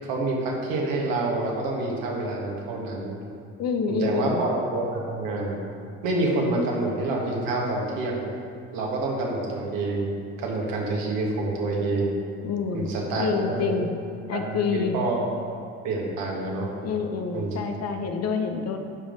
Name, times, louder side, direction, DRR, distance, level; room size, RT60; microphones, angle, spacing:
voice 1, 0.0-3.2 3.9-5.6 6.0-8.2 8.7-10.1 10.4-12.1 12.7-13.7 14.3-15.2 15.8-16.7 17.3-17.6, right 2 dB, 65° right, -2 dB, 1.9 m, -27 dB
voice 2, 3.6-4.4 12.4-12.9 13.2-13.9 14.3-15.0 16.8-18.8, left 5 dB, 45° left, 5 dB, 0.9 m, -27 dB
11.0 x 5.1 x 3.9 m, 2.3 s
hypercardioid pair, 65°, 36 cm